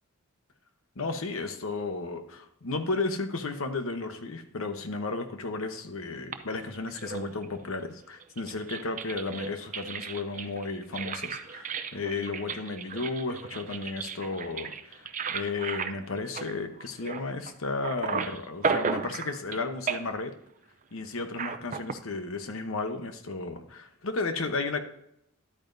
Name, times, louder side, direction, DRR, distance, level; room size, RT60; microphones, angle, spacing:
voice 1, 1.0-20.3 20.9-24.8, left 3 dB, 80° left, 7 dB, 1.0 m, -33 dB
sound 1, 6.3-7.6 8.2-17.5 17.8-19.6 19.9-20.3 21.3-21.9, right 5 dB, 35° right, 0.5 m, -34 dB
11.5 x 8.8 x 2.7 m, 0.74 s
head